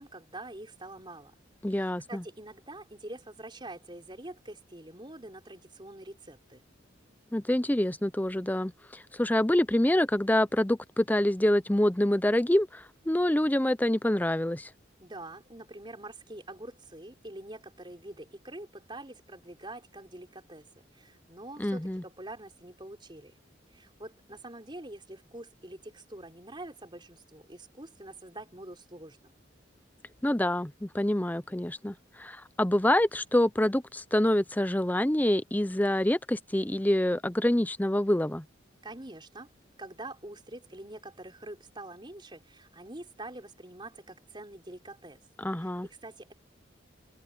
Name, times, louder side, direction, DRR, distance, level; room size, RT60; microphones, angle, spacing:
voice 1, 0.0-1.3 1.7-6.6 15.0-23.3 23.7-29.3 38.8-39.5 39.8-45.2 45.6-46.3, right 1 dB, 25° right, 5.1 m, -45 dB
voice 2, 1.6-2.2 7.3-14.7 21.6-22.0 30.2-38.4 45.4-45.9, left 1 dB, 10° left, 0.6 m, -26 dB
head